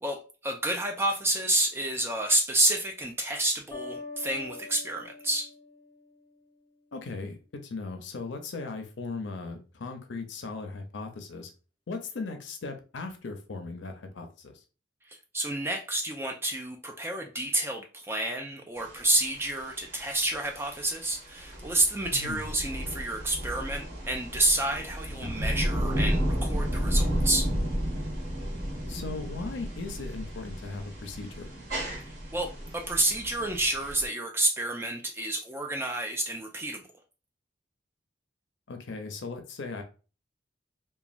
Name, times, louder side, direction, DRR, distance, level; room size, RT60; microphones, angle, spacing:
voice 1, 0.0-5.5 15.1-27.5 32.1-36.9, right 1 dB, 10° right, 2 dB, 0.3 m, -29 dB
sound 1, 3.7-6.5, left 3 dB, 25° left, 0.6 m, -43 dB
voice 2, 6.9-11.5 11.9-14.5 22.1-22.4 25.2-25.3 28.9-31.5 38.7-39.8, left 3 dB, 80° left, 5 dB, 0.6 m, -38 dB
sound 2, 18.8-34.1, equal, 40° right, 1.3 m, -32 dB
3.1 x 2.2 x 2.4 m, 0.35 s
head